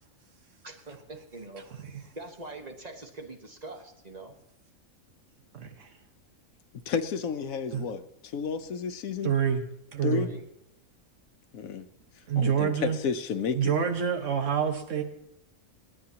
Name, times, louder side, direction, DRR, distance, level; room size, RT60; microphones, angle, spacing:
voice 1, 0.6-1.6 2.1-4.3 10.1-10.5, right 2 dB, 30° right, 4 dB, 1.4 m, -43 dB
voice 2, 5.5-5.9 7.7-7.8 9.2-9.6 9.9-10.3 12.3-13.0 13.5-15.0, right 7 dB, 65° right, 5 dB, 1.6 m, -27 dB
voice 3, 6.9-9.3 10.0-10.3 11.5-11.9 12.4-13.7, left 6 dB, 90° left, 10 dB, 1.3 m, -31 dB
28.0 x 9.5 x 2.9 m, 0.78 s
omnidirectional pair, 1.4 m